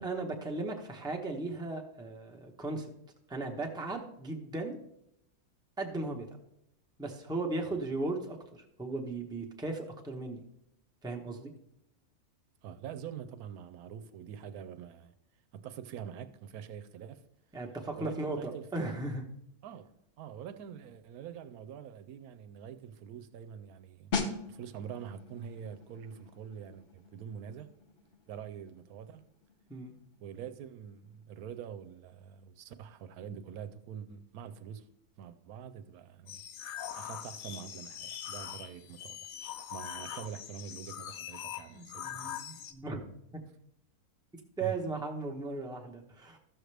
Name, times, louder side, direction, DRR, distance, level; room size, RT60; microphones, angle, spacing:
voice 1, 0.0-2.9 3.3-4.8 5.8-6.3 7.0-10.4 11.0-11.5 17.5-19.3 29.7-30.0 41.7-43.0 43.3-43.4 44.6-46.4, right 3 dB, 5° right, 0.7 m, -37 dB
voice 2, 12.6-15.1 15.5-17.2 18.0-18.7 19.6-19.9 20.2-27.7 28.3-29.3 30.2-34.9 35.2-36.4 37.0-39.3 39.7-42.4 44.6-44.8, right 8 dB, 85° right, 1.1 m, -45 dB
sound 1, 24.1-34.6 34.9-35.2, left 4 dB, 45° left, 1.0 m, -43 dB
sound 2, 36.3-42.7, left 10 dB, 70° left, 1.0 m, -42 dB
13.0 x 6.4 x 3.3 m
omnidirectional pair, 1.5 m